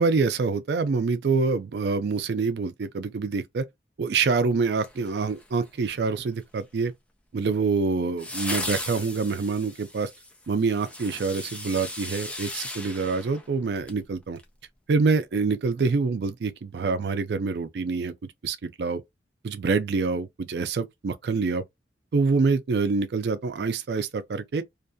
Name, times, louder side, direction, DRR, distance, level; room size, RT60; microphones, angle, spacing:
voice 1, 0.0-3.6 4.0-6.9 7.3-10.1 10.5-14.4 14.9-18.1 18.4-19.0 19.4-21.6 22.1-24.6, right 4 dB, 65° right, 0.4 m, -26 dB
sound 1, 4.7-5.7 8.2-14.0 14.4-14.5, left 2 dB, 5° left, 0.4 m, -37 dB
2.5 x 2.3 x 2.5 m
head